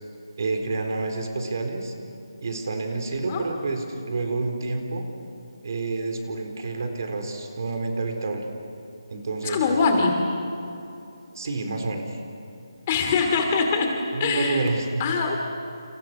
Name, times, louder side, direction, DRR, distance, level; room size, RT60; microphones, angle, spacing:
voice 1, 0.4-1.9 2.4-5.1 5.6-8.5 9.1-9.6 11.3-12.2 14.1-15.0, right 3 dB, 45° right, 4 dB, 4.1 m, -28 dB
voice 2, 9.4-10.2 12.9-14.6 15.0-15.4, left 4 dB, 20° left, 3 dB, 2.6 m, -23 dB
29.5 x 29.5 x 6.0 m, 2.8 s
figure-of-eight pair, 170°, 3 cm